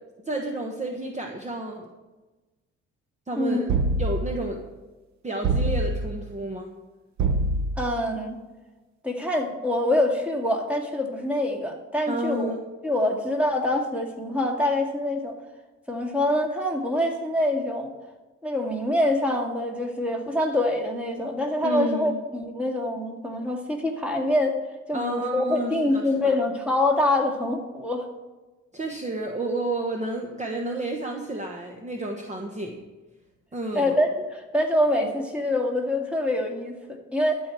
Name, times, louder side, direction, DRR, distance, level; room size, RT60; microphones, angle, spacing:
voice 1, 0.3-1.9 3.3-4.6 5.2-6.7 12.1-12.6 21.6-22.2 24.9-26.4 28.7-32.8 33.5-33.9, right 2 dB, 25° right, 2 dB, 1.2 m, -31 dB
sound 1, 3.7-4.4 5.4-6.2 7.2-7.9, right 2 dB, 65° right, 1.0 m, -25 dB
voice 2, 7.8-8.4 9.0-12.5 12.8-15.3 15.9-17.9 18.4-24.6 24.9-28.1 33.7-37.4, left 1 dB, 5° right, 1 dB, 2.2 m, -25 dB
12.5 x 4.7 x 8.4 m, 1.2 s
cardioid pair, 90°, 30 cm